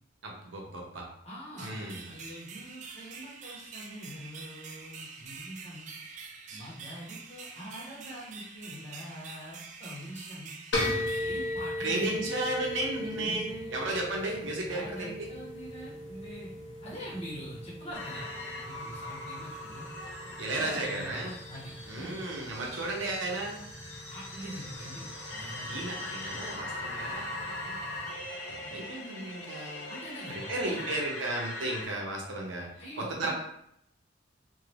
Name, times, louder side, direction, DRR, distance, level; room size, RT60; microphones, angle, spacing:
voice 1, 0.2-1.1 1.6-2.1 11.8-15.3 20.4-21.3 21.9-23.6 25.6-27.8 28.5-29.9 30.3-32.7 33.0-33.3, right 2 dB, 75° right, -1 dB, 0.7 m, -34 dB
voice 2, 1.2-5.9 6.5-10.5 11.1-12.4 13.0-13.7 14.7-16.5 16.8-18.3 18.6-19.9 20.5-22.2 24.1-26.0 29.9-30.8 32.8-33.3, equal, 35° left, -7 dB, 1.2 m, -44 dB
sound 1, 1.6-12.3, right 5 dB, 40° right, 0.3 m, -46 dB
sound 2, 10.7-28.1, left 1 dB, 90° left, 0.9 m, -39 dB
sound 3, 17.9-31.9, left 2 dB, 60° left, 0.9 m, -41 dB
2.7 x 2.4 x 3.2 m, 0.74 s
head